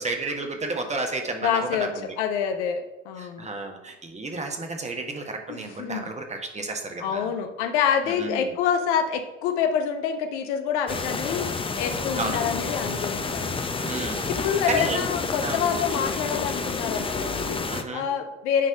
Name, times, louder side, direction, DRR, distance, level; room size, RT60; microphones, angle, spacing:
voice 1, 0.0-2.1 3.2-7.3 8.1-8.5 12.2-12.4 13.8-14.3 14.6-15.1 15.4-15.6 17.7-18.1, right 3 dB, 20° right, 3 dB, 1.6 m, -32 dB
voice 2, 1.4-1.9 2.2-3.5 5.5-6.1 7.0-13.5 14.3-17.6 17.9-18.7, left 7 dB, 65° left, 7 dB, 1.0 m, -27 dB
sound 1, 10.9-17.8, left 4 dB, 15° left, 0.7 m, -29 dB
10.5 x 4.1 x 5.1 m, 1.0 s
hypercardioid pair, 70°, 37 cm